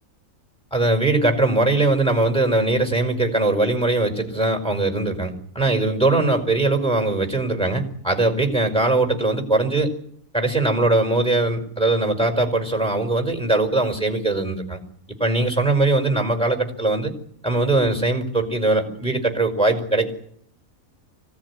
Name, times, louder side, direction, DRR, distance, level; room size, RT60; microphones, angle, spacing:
voice 1, 0.7-9.9 10.3-14.8 15.2-17.1 17.4-20.1, right 2 dB, 5° left, 6 dB, 5.0 m, -21 dB
25.5 x 17.5 x 9.9 m, 0.68 s
omnidirectional pair, 1.5 m